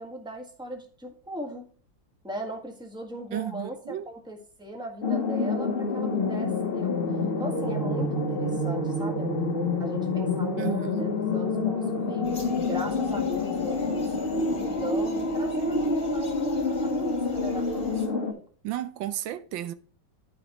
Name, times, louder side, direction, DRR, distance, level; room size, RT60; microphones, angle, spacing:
voice 1, 0.0-1.7 2.2-7.1 7.4-12.3 12.7-18.4, equal, ahead, 1.4 m, -38 dB
voice 2, 3.3-4.1 10.6-11.1 18.6-19.7, right 13 dB, 85° right, 1.4 m, -33 dB
sound 1, 5.0-18.3, left 3 dB, 35° left, 1.0 m, -27 dB
sound 2, 12.2-18.1, left 3 dB, 20° left, 2.5 m, -47 dB
12.0 x 5.1 x 3.0 m
omnidirectional pair, 2.1 m